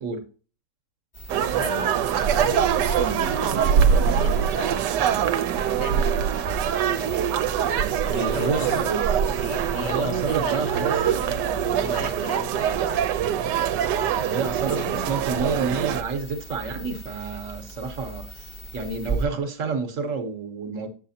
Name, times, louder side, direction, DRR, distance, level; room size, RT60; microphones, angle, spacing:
sound 1, 1.1-19.3, right 2 dB, 20° left, 1.1 m, -38 dB
sound 2, 1.3-16.0, right 8 dB, 80° right, 1.2 m, -23 dB
voice 1, 1.5-2.0 2.3-3.3 4.0-5.2 5.8-6.2 8.1-8.9 9.4-13.0 14.6-15.4, left 4 dB, 60° left, 1.4 m, -36 dB
sound 3, 2.9-4.7 5.7-6.6 7.0-7.4 7.7-7.8 8.1-8.2, right 3 dB, 20° right, 0.8 m, -39 dB
voice 2, 8.1-9.1 9.7-11.1 14.2-20.9, right 4 dB, 55° right, 1.2 m, -29 dB
7.5 x 7.1 x 2.7 m
omnidirectional pair, 1.8 m